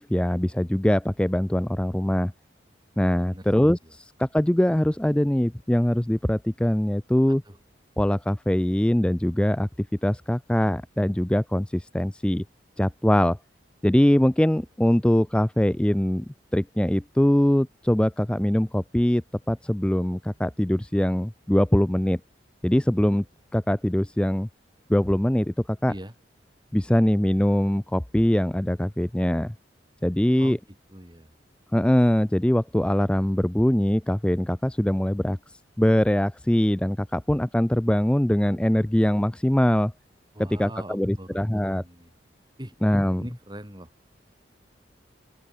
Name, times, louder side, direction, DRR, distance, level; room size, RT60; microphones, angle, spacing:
voice 1, 0.0-2.3 3.0-7.4 8.0-12.4 12.8-13.4 13.8-16.3 16.5-19.2 19.5-22.2 22.6-23.2 23.5-24.5 24.9-25.9 26.7-29.5 30.0-30.6 31.7-39.9 40.4-41.8 42.8-43.2, left 1 dB, 5° left, 0.3 m, -22 dB
voice 2, 30.9-31.3 40.3-42.1 42.6-42.7 43.2-43.9, right 1 dB, 25° right, 4.8 m, -41 dB
open air
head